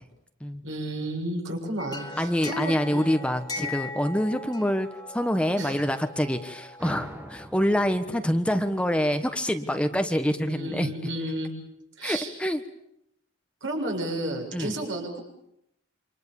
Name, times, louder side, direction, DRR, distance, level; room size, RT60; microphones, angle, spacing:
voice 1, 0.6-3.1 3.6-3.7 5.6-5.9 9.7-9.9 10.4-11.5 12.0-12.3 13.6-15.2, right 1 dB, 75° right, 1 dB, 7.4 m, -32 dB
sound 1, 1.8-7.5, left 3 dB, 20° left, 1.6 m, -39 dB
voice 2, 2.2-4.9 5.1-11.1 12.0-12.6 14.5-14.7, equal, 5° left, 7 dB, 1.3 m, -26 dB
sound 2, 6.8-10.1, equal, 10° right, 1.7 m, -45 dB
28.0 x 25.5 x 7.2 m, 0.77 s
head